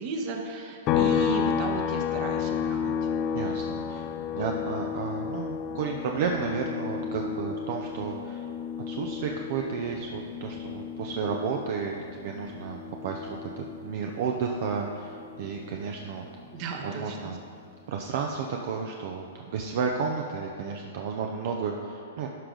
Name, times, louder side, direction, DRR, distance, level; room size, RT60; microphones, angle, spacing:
voice 1, 0.0-2.9 16.5-17.3, right 4 dB, 40° right, 2 dB, 1.2 m, -34 dB
sound 1, 0.9-14.4 14.7-16.9, left 7 dB, 35° left, 0.5 m, -32 dB
voice 2, 3.3-4.1 4.3-8.5 8.9-16.3 16.8-17.4 17.9-19.3 19.5-22.3, right 5 dB, 60° right, 2 dB, 0.6 m, -32 dB
12.0 x 5.0 x 3.9 m, 2.3 s
hypercardioid pair, 130°, 0 cm